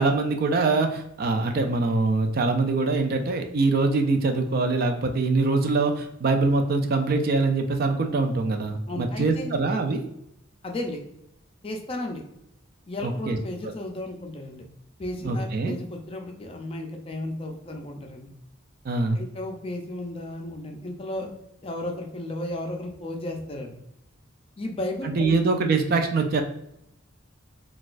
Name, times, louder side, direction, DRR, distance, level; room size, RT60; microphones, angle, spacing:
voice 1, 0.0-10.0 13.0-13.4 15.2-15.8 18.9-19.2 25.0-26.4, right 3 dB, 45° right, 5 dB, 0.3 m, -23 dB
voice 2, 8.9-9.5 10.6-11.0 11.6-12.2 12.9-14.6 15.0-18.3 19.1-21.3 21.6-23.7 24.6-25.4, left 1 dB, 25° left, 2 dB, 0.4 m, -34 dB
3.9 x 2.3 x 2.4 m, 0.80 s
head